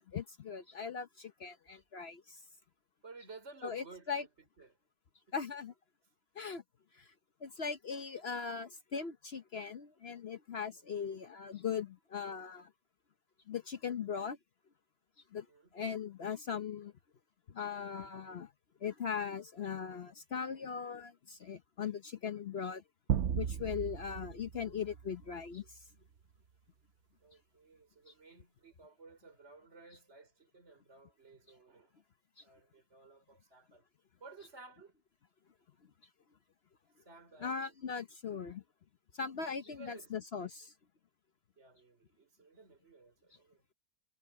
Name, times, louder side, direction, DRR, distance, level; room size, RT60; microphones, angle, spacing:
voice 1, 0.1-2.4 3.6-4.2 5.3-5.7 6.3-6.6 6.9-7.1 7.4-12.7 13.5-14.4 15.3-15.5 15.7-16.9 17.5-18.5 18.8-22.8 23.4-25.8 32.4-32.5 37.4-38.6 39.1-40.7, left 6 dB, 50° left, 0.8 m, -39 dB
voice 2, 3.0-4.8 5.3-5.4 10.8-11.2 15.5-15.7 27.2-32.0 32.4-33.8 34.2-34.9 36.8-37.6 38.0-38.1 39.5-40.2 41.6-43.6, right 3 dB, 40° right, 4.9 m, -56 dB
sound 1, 23.1-25.6, right 8 dB, 55° right, 0.8 m, -36 dB
omnidirectional pair, 1.8 m